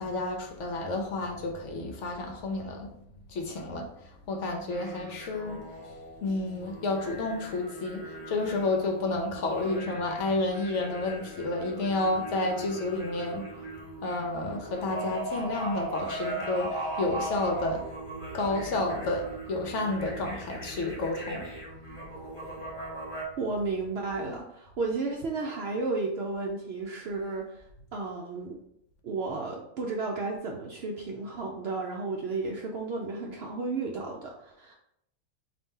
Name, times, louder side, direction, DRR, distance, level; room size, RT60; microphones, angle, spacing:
voice 1, 0.0-2.9 3.3-13.5 14.0-17.9 18.3-21.5 22.0-22.1, left 2 dB, 65° left, 2 dB, 0.9 m, -31 dB
sound 1, 4.7-23.2, right 2 dB, 20° left, 1.4 m, -39 dB
voice 2, 23.4-27.7 27.9-28.6 29.0-34.7, right 3 dB, 65° right, 0 dB, 0.6 m, -33 dB
4.0 x 2.6 x 3.6 m, 0.76 s
omnidirectional pair, 1.5 m